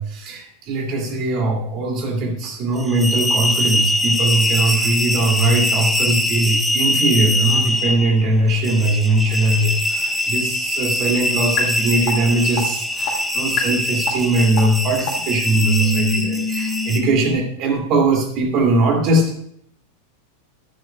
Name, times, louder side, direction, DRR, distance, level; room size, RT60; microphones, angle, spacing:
voice 1, 0.0-19.5, right 2 dB, 40° right, 1 dB, 2.6 m, -20 dB
sound 1, 2.8-17.0, left 1 dB, 5° left, 1.1 m, -22 dB
sound 2, 11.6-11.7 12.1-12.2 12.6-12.7 13.1-13.2 13.6-13.7 14.1-14.2 14.6-14.7 15.1-15.2 15.6-17.3, left 6 dB, 40° left, 1.9 m, -24 dB
14.0 x 11.0 x 2.4 m, 0.71 s
figure-of-eight pair, 90°, 0 cm